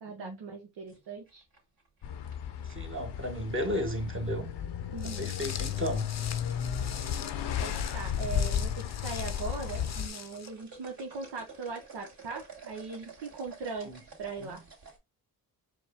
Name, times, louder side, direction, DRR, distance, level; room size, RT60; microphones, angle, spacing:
voice 1, 0.0-1.4 4.9-5.3 7.6-14.6, right 4 dB, 85° right, 0.9 m, -40 dB
sound 1, 0.9-3.0 4.5-4.9 5.3-5.7 6.7-7.2 7.5-7.7 8.2-8.3 8.9-15.0, right 5 dB, 60° right, 2.6 m, -51 dB
sound 2, 2.0-10.1, left 9 dB, 80° left, 0.7 m, -34 dB
voice 2, 2.6-4.5 5.0-6.1 13.8-14.0 14.4-14.6, equal, 30° right, 1.2 m, -34 dB
Walk footsteps, 5.0-10.5, left 7 dB, 40° left, 0.6 m, -43 dB
4.6 x 2.2 x 3.5 m
cardioid pair, 50°, 41 cm